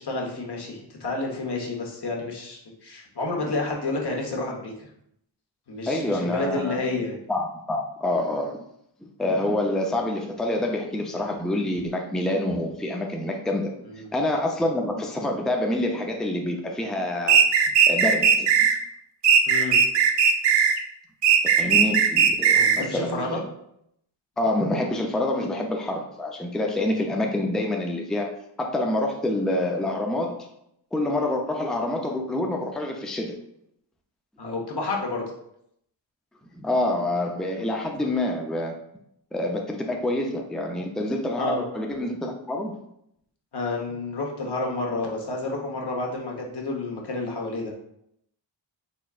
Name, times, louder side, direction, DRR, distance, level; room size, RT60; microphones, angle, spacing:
voice 1, 0.0-4.7 5.7-7.2 13.8-14.1 19.5-19.8 22.5-23.4 34.4-35.2 41.4-41.6 43.5-47.7, left 2 dB, 55° left, -1 dB, 1.2 m, -30 dB
voice 2, 5.9-6.8 7.3-8.5 9.2-13.7 14.1-17.4 17.9-18.7 21.6-23.5 24.4-28.3 28.6-30.5 30.9-33.4 36.5-38.7 39.3-42.7, left 1 dB, ahead, 2 dB, 0.5 m, -27 dB
sound 1, 17.3-18.7 19.2-20.8 21.2-22.8, right 7 dB, 60° right, 0.6 m, -18 dB
4.2 x 3.5 x 2.4 m, 0.75 s
cardioid pair, 60°, 48 cm